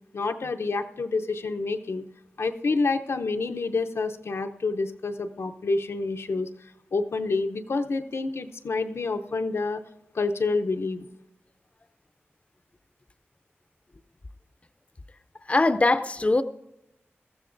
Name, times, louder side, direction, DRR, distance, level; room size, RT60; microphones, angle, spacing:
voice 1, 0.1-2.0 2.4-6.5 6.9-9.8 10.1-11.0, left 3 dB, 85° left, 6 dB, 0.7 m, -28 dB
voice 2, 15.5-16.4, left 2 dB, 30° left, 12 dB, 0.5 m, -21 dB
19.5 x 14.0 x 2.6 m, 0.88 s
wide cardioid pair, 75°, 4 cm